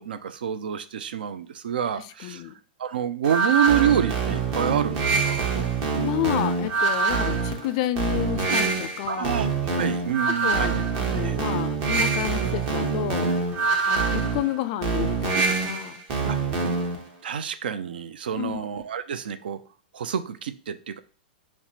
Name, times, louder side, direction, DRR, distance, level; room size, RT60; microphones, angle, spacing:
voice 1, 0.0-2.4 2.8-5.5 9.1-9.5 9.8-10.7 11.2-11.4 13.7-13.8 16.3-16.5 17.2-19.6 19.9-21.0, right 9 dB, 75° right, 13 dB, 0.4 m, -27 dB
voice 2, 2.2-2.5 6.0-9.4 10.3-13.3 13.9-16.0 18.3-18.6, left 14 dB, 50° left, 12 dB, 0.3 m, -30 dB
sound 1, 3.2-17.0, right 4 dB, 45° right, 1.0 m, -25 dB
5.8 x 2.1 x 2.7 m, 0.40 s
hypercardioid pair, 110°, 5 cm